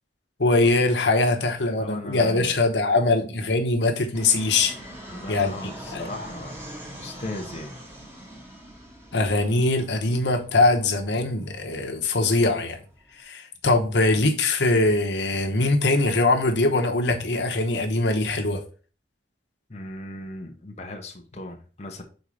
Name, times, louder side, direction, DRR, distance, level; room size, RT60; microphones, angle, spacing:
voice 1, 0.4-4.7 5.3-6.1 9.1-12.8 13.2-18.6, left 2 dB, 90° left, 1.1 m, -22 dB
voice 2, 1.3-2.6 5.1-6.6 7.0-7.8 19.7-22.0, left 2 dB, 40° left, 0.9 m, -37 dB
Fixed-wing aircraft airplane, 4.1-13.2, equal, 15° right, 1.7 m, -43 dB
5.5 x 4.1 x 4.8 m
head